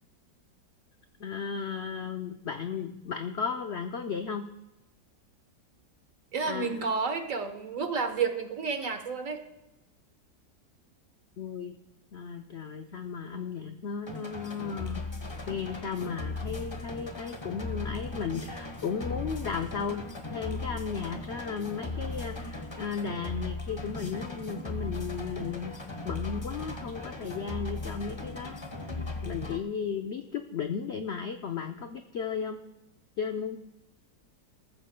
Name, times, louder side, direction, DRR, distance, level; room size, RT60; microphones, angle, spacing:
voice 1, 1.2-4.4 6.4-6.9 11.4-11.8 12.1-15.0 15.5-25.7 26.0-28.6 28.8-28.9 29.2-32.6 33.2-33.6, left 6 dB, 65° left, 6 dB, 0.6 m, -35 dB
voice 2, 6.3-9.4, right 5 dB, 50° right, 6 dB, 1.4 m, -30 dB
sound 1, 14.1-29.6, left 2 dB, 20° left, 0.8 m, -37 dB
20.0 x 14.5 x 2.2 m, 0.98 s
omnidirectional pair, 1.9 m